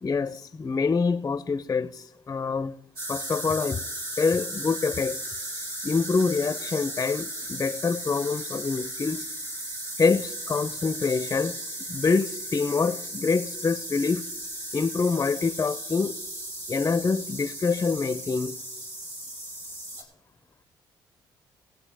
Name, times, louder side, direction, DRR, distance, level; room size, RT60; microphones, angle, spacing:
voice 1, 0.0-2.8 3.1-3.8 4.2-5.4 5.8-9.3 10.0-11.6 11.9-14.2 14.7-16.2 16.7-18.6, left 4 dB, 30° left, 0.5 m, -26 dB
sound 1, 3.0-20.0, right 1 dB, 80° right, 3.3 m, -36 dB
21.0 x 7.8 x 3.4 m
supercardioid pair, 65°, 9 cm